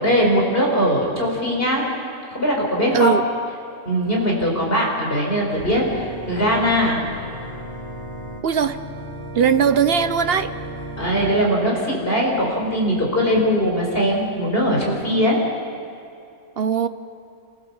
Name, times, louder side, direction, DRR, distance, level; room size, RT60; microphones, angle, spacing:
voice 1, 0.0-1.9 2.3-3.1 3.8-7.0 11.0-15.4, equal, 40° left, -2 dB, 4.8 m, -20 dB
Organ, 5.6-11.4, equal, 20° left, 3.4 m, -34 dB
voice 2, 8.4-8.8 9.3-10.5 16.6-16.9, right 7 dB, 55° right, 11 dB, 0.8 m, -19 dB
28.5 x 15.5 x 7.2 m, 2.6 s
omnidirectional pair, 1.4 m